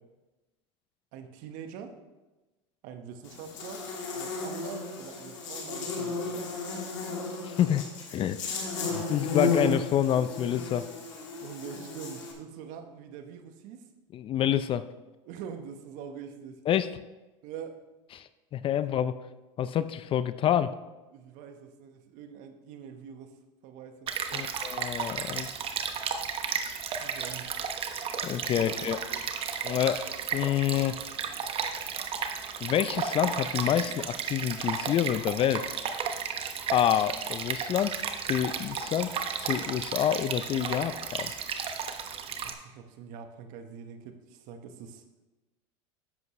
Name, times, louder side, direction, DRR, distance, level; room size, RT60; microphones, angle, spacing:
voice 1, 1.1-1.9 2.8-3.9 4.1-6.4 11.4-13.8 15.3-16.6 17.4-17.8 21.1-23.4 23.6-24.5 27.0-27.5 28.6-29.2 42.2-45.0, right 7 dB, 60° right, 6 dB, 1.3 m, -44 dB
Buzz, 3.2-12.3, left 3 dB, 90° left, 2.3 m, -34 dB
voice 2, 7.4-7.8 8.1-8.4 8.9-10.9 14.1-14.8 16.7-16.9 18.1-19.1 19.6-20.7 24.3-25.5 28.2-29.0 29.6-30.0 30.3-31.0 32.6-35.7 36.7-37.9 38.3-39.1 39.4-41.3, left 10 dB, 35° left, 13 dB, 0.5 m, -27 dB
Stream, 24.1-42.5, right 7 dB, 35° right, 1.0 m, -34 dB
10.5 x 8.0 x 3.2 m, 1.1 s
supercardioid pair, 105°, 15 cm